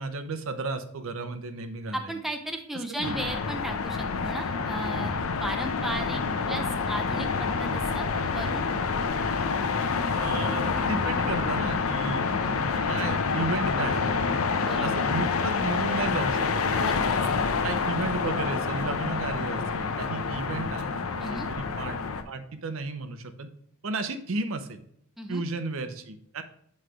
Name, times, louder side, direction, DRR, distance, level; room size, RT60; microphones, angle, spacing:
voice 1, 0.0-2.2 2.9-3.2 6.5-6.6 10.2-12.3 12.5-12.6 12.9-14.1 14.8-16.9 17.6-22.0 22.3-23.5 23.8-24.8 25.3-26.4, right 3 dB, 65° right, 10 dB, 0.6 m, -33 dB
voice 2, 1.9-5.1 5.4-6.2 6.5-8.7 14.6-15.0 16.8-17.5 21.2-21.5 25.2-25.4, right 1 dB, ahead, 4 dB, 0.5 m, -35 dB
sound 1, 3.0-22.2, left 4 dB, 75° left, 0.6 m, -27 dB
7.8 x 3.2 x 4.8 m, 0.70 s
head